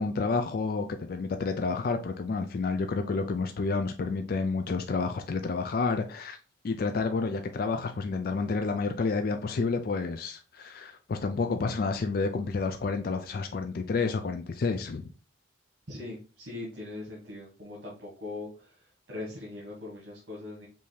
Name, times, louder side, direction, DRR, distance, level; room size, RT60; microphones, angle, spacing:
voice 1, 0.0-6.4 6.6-15.1, left 4 dB, 50° left, 0.4 m, -30 dB
voice 2, 15.9-20.7, left 2 dB, 70° right, 1.5 m, -41 dB
5.4 x 2.7 x 3.2 m
head